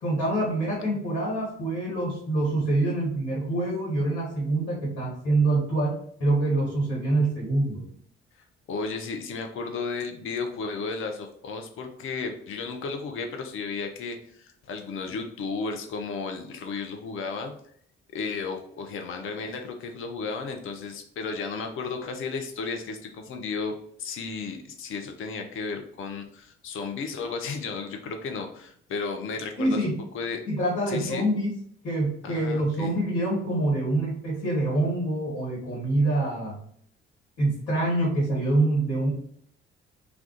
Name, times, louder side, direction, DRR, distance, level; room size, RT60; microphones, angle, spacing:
voice 1, 0.0-5.9 6.2-7.8 29.6-30.0 30.5-31.5 31.8-36.5 37.4-39.1, right 2 dB, 75° left, -5 dB, 1.3 m, -25 dB
voice 2, 8.7-17.5 18.1-23.7 24.0-30.4 30.9-31.2 32.2-32.9, left 4 dB, 45° left, 5 dB, 0.6 m, -34 dB
2.3 x 2.3 x 3.7 m, 0.65 s
hypercardioid pair, 45°, 29 cm